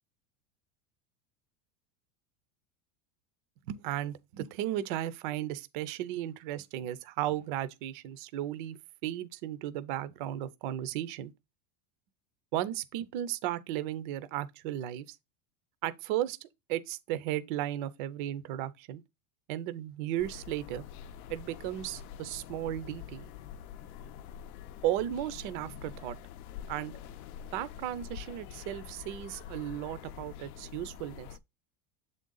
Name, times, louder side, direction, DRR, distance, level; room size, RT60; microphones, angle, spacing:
voice 1, 3.6-11.3 12.5-15.2 15.8-16.4 16.7-19.0 19.5-20.8 21.3-23.3 24.8-26.2 26.7-26.9 27.5-31.3, right 12 dB, 35° right, 0.4 m, -35 dB
sound 1, 20.2-31.4, left 9 dB, 65° left, 0.7 m, -46 dB
7.7 x 3.8 x 3.7 m
supercardioid pair, 175°, 45 cm